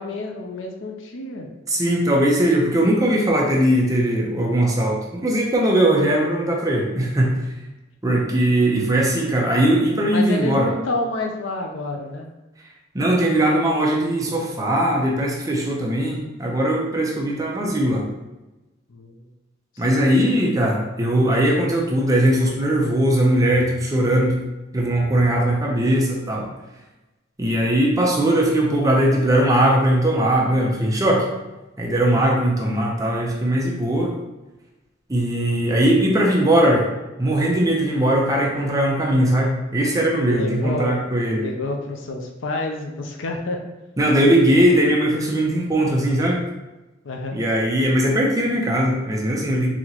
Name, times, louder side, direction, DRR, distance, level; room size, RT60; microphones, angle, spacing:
voice 1, 0.0-1.5 8.1-8.2 10.1-12.3 18.9-19.3 19.8-20.0 32.1-32.4 40.1-41.0 41.3-43.6 47.0-47.4, left 2 dB, 85° left, 2 dB, 0.5 m, -29 dB
voice 2, 1.7-7.4 8.0-10.7 12.9-18.0 19.8-24.4 24.7-26.5 27.4-31.3 31.8-34.1 35.1-36.9 37.2-41.4 44.0-46.4 47.3-49.7, right 1 dB, 20° right, -2 dB, 0.6 m, -19 dB
4.0 x 3.0 x 2.9 m, 1.0 s
head